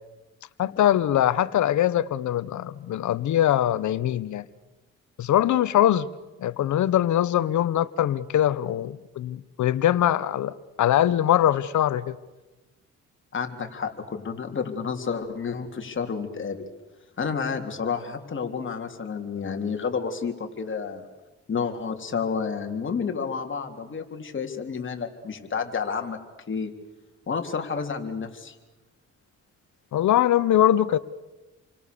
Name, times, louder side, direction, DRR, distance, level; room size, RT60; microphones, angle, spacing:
voice 1, 0.6-4.4 5.2-6.1 6.4-12.1 29.9-31.0, left 11 dB, 70° left, 1.2 m, -22 dB
voice 2, 13.3-16.6 17.2-21.0 21.5-26.2 26.5-26.7 27.3-28.6, left 5 dB, 40° left, 3.6 m, -30 dB
29.5 x 24.5 x 7.0 m
cardioid pair, 90°, 30 cm